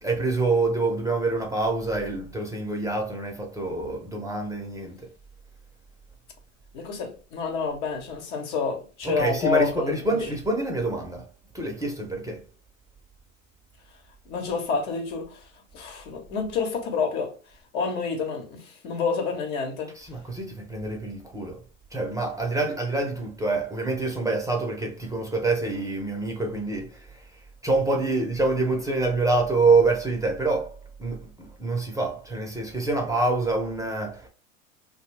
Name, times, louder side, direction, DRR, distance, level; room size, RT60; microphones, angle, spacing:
voice 1, 0.0-5.1 9.0-11.3 11.5-12.4 19.9-21.6 21.9-34.3, right 3 dB, 10° right, 0.6 m, -26 dB
voice 2, 6.7-10.2 14.3-15.5 15.7-17.3 17.7-19.9, left 5 dB, 60° left, 1.1 m, -28 dB
2.6 x 2.2 x 3.2 m
hypercardioid pair, 85°, 38 cm